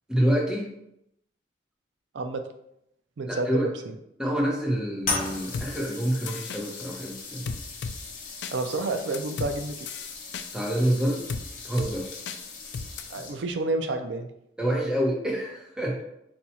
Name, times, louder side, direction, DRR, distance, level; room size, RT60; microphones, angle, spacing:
voice 1, 0.1-0.7 3.3-3.7 4.2-7.5 10.5-11.2 11.6-12.2 14.6-16.0, equal, 5° right, -2 dB, 0.8 m, -27 dB
voice 2, 3.2-3.7 8.5-9.9 13.1-14.3, right 2 dB, 80° right, 7 dB, 0.4 m, -29 dB
sound 1, 5.0-13.6, left 4 dB, 45° left, 0.7 m, -38 dB
sound 2, 5.5-5.7 6.3-6.6 7.5-8.0 8.4-8.5 9.1-9.5 9.9-10.5 11.3-11.4 11.8-11.9 12.3-12.4 12.7-13.0, left 5 dB, 75° left, 0.3 m, -34 dB
4.2 x 2.3 x 4.1 m, 0.80 s
head